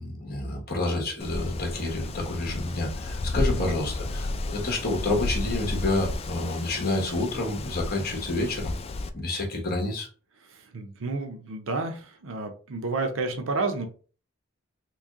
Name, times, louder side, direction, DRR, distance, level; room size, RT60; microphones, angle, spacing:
voice 1, 0.0-8.7 9.1-10.1, left 2 dB, 45° left, 0 dB, 1.2 m, -29 dB
Wind, 1.2-9.1, left 2 dB, 30° left, 0.3 m, -32 dB
voice 2, 3.3-3.8 10.5-13.9, right 3 dB, 65° right, 5 dB, 0.7 m, -31 dB
3.1 x 2.6 x 3.6 m, 0.39 s
head